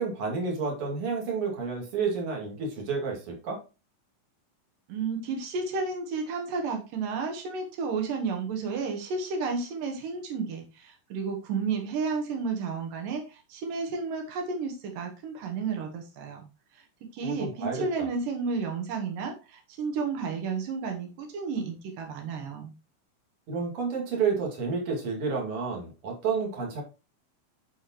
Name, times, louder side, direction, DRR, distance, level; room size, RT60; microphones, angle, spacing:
voice 1, 0.0-3.6 17.2-18.1 23.5-26.8, right 5 dB, 45° right, 0 dB, 3.0 m, -30 dB
voice 2, 4.9-16.5 16.7-16.8 17.1-22.7, right 4 dB, 80° right, 3 dB, 2.9 m, -32 dB
11.0 x 5.0 x 3.0 m, 0.29 s
omnidirectional pair, 3.8 m